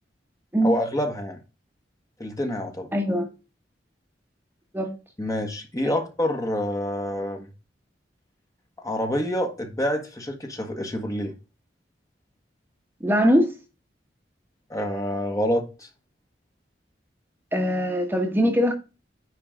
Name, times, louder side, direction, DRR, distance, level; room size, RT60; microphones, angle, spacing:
voice 1, 0.6-1.4 2.2-2.9 5.2-7.5 8.8-11.3 14.7-15.9, left 1 dB, 20° left, 1.4 m, -27 dB
voice 2, 2.9-3.3 4.7-4.9 5.8-5.9 13.0-13.5 17.5-18.7, equal, 10° right, 1.3 m, -21 dB
9.6 x 3.9 x 4.9 m
head